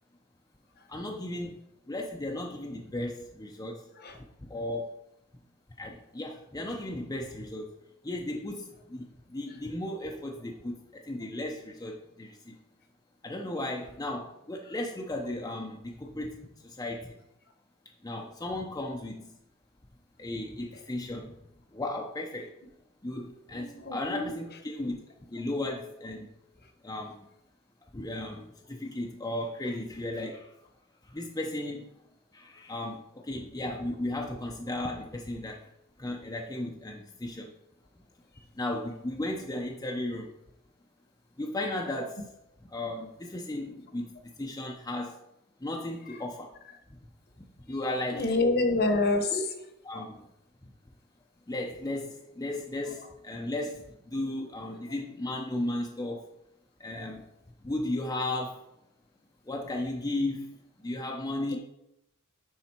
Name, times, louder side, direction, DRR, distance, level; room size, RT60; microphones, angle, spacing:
voice 1, 0.9-3.9 4.4-4.9 5.8-7.7 8.0-12.6 13.2-17.2 18.0-19.3 20.2-21.4 21.7-22.5 23.0-26.3 26.8-27.3 27.9-30.5 31.0-31.8 32.3-35.6 36.0-37.5 38.5-40.3 41.4-42.3 42.7-45.2 45.6-46.5 46.9-47.0 47.4-48.4 49.3-49.4 49.8-50.3 51.5-56.2 56.8-57.2 57.6-58.6 59.5-61.6, left 1 dB, 15° left, 0 dB, 0.6 m, -35 dB
voice 2, 23.5-24.3 48.1-49.3, left 2 dB, 45° left, 6 dB, 1.1 m, -26 dB
10.0 x 4.1 x 4.4 m, 0.82 s
head